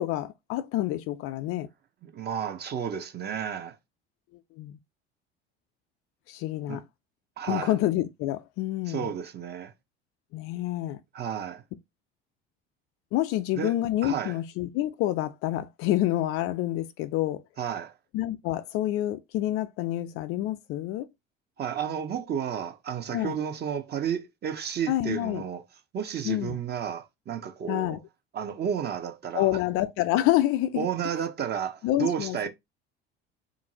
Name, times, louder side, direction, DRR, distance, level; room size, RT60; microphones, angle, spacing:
voice 1, 0.0-1.7 4.6-4.8 6.3-6.8 7.5-9.1 10.3-11.0 13.1-17.4 18.1-21.1 23.1-23.4 24.9-25.4 26.2-26.6 27.7-28.0 29.3-30.9 31.8-32.5, left 14 dB, 45° left, 0.4 m, -28 dB
voice 2, 2.0-3.8 6.7-6.8 7.4-7.7 8.9-9.7 11.1-11.6 13.6-13.7 14.0-14.4 17.6-17.9 21.6-25.6 25.9-28.0 28.3-29.6 30.7-32.5, right 8 dB, 35° right, 0.7 m, -32 dB
3.7 x 2.5 x 2.9 m
figure-of-eight pair, 60°, 31 cm